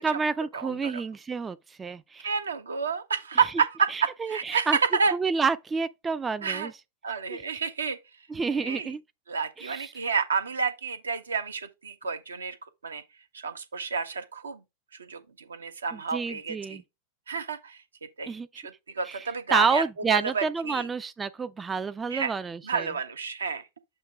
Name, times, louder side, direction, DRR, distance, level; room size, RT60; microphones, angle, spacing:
voice 1, 0.0-2.3 3.9-4.8 5.1-6.7 7.3-7.4 8.3-9.0 9.6-9.9 16.1-16.8 18.3-18.5 19.0-22.9, right 5 dB, 15° right, 0.3 m, -29 dB
voice 2, 0.5-1.0 2.2-5.1 6.4-6.7 7.0-8.0 8.5-8.9 9.3-12.6 12.8-13.0 13.3-14.6 15.0-16.8 17.3-17.8 18.2-20.9 22.1-22.3 22.6-23.6, right 5 dB, 70° right, 0.8 m, -30 dB
7.3 x 2.8 x 4.8 m
figure-of-eight pair, 90°, 0 cm